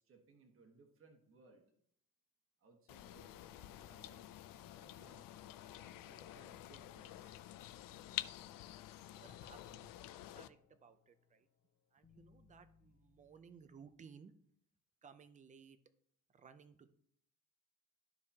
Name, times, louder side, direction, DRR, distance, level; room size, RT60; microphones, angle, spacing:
voice 1, 0.0-1.7 2.6-5.2 5.7-7.5, right 3 dB, 40° right, 3 dB, 1.3 m, -65 dB
sound 1, 2.9-10.5, left 14 dB, 75° left, 0.5 m, -49 dB
voice 2, 9.1-11.5 11.9-14.3 15.0-15.8 16.3-16.9, right 6 dB, 25° right, 11 dB, 0.4 m, -60 dB
sound 2, 9.2-13.9, left 6 dB, 30° left, 0.9 m, -69 dB
13.0 x 4.7 x 2.8 m, 0.67 s
cardioid pair, 180°, 33 cm